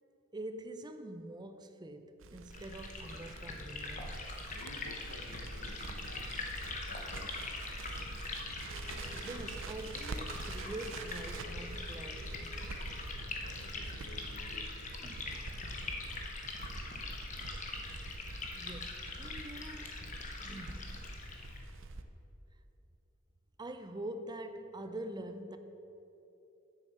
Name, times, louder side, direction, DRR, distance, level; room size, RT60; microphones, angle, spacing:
voice 1, 0.3-4.2 9.1-12.6 15.0-15.3 18.6-20.1 20.4-21.0 23.6-25.6, right 1 dB, 20° right, 0.5 m, -45 dB
Crackle, 2.2-22.0, right 2 dB, 65° right, 0.6 m, -46 dB
Liquid, 2.5-21.6, left 3 dB, 40° left, 1.0 m, -43 dB
voice 2, 4.5-6.5 6.8-7.4 13.2-14.7, left 1 dB, 85° left, 1.1 m, -53 dB
Wind instrument woodwind instrument, 8.7-12.9, left 4 dB, 35° right, 1.0 m, -58 dB
7.7 x 7.2 x 6.6 m
head